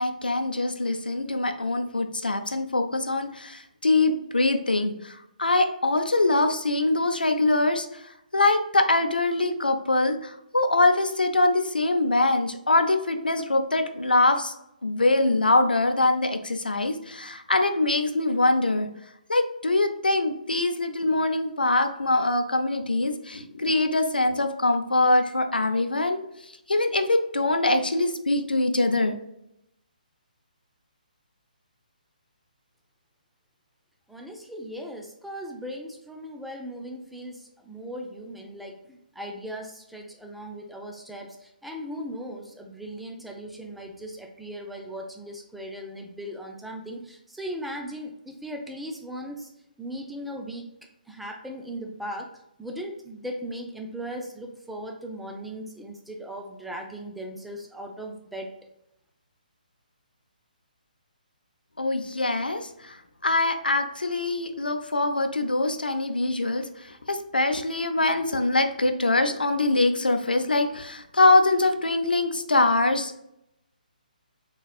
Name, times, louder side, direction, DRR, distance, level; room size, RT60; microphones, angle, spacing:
voice 1, 0.0-8.0 8.3-14.5 14.8-18.9 19.3-26.2 26.7-29.2 61.8-73.2, left 2 dB, 90° left, 6 dB, 0.6 m, -23 dB
voice 2, 34.1-49.5 49.8-50.7 51.1-52.3 52.6-58.5, equal, ahead, 2 dB, 0.5 m, -38 dB
4.1 x 3.8 x 2.3 m, 0.81 s
figure-of-eight pair, 140°, 5 cm